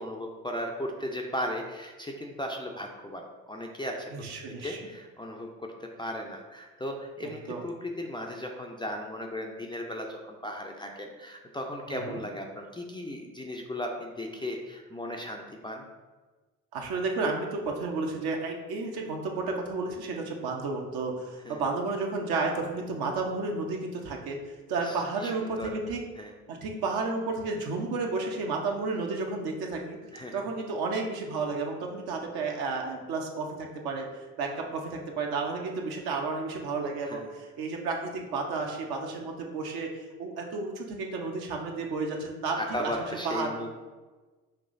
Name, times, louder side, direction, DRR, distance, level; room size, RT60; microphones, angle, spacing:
voice 1, 0.0-4.1 4.6-15.9 21.4-21.6 24.8-25.7 26.2-26.3 30.1-30.4 37.0-37.3 42.6-43.7, left 1 dB, 10° left, 1 dB, 0.4 m, -36 dB
voice 2, 4.1-4.8 7.2-7.7 11.9-12.2 16.7-24.4 24.7-26.0 26.5-30.0 30.3-42.9 43.2-43.5, right 3 dB, 60° right, 1 dB, 0.9 m, -32 dB
5.7 x 3.0 x 2.6 m, 1.3 s
figure-of-eight pair, 45°, 43 cm